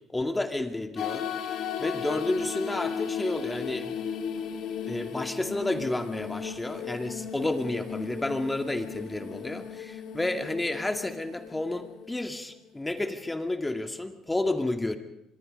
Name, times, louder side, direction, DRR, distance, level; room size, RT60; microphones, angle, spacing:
voice 1, 0.1-1.2 1.8-3.9 4.8-15.0, left 2 dB, 15° left, 7 dB, 2.2 m, -31 dB
sound 1, 1.0-12.8, left 7 dB, 65° left, 2.5 m, -36 dB
25.5 x 22.0 x 5.4 m, 0.88 s
supercardioid pair, 70°, 0 cm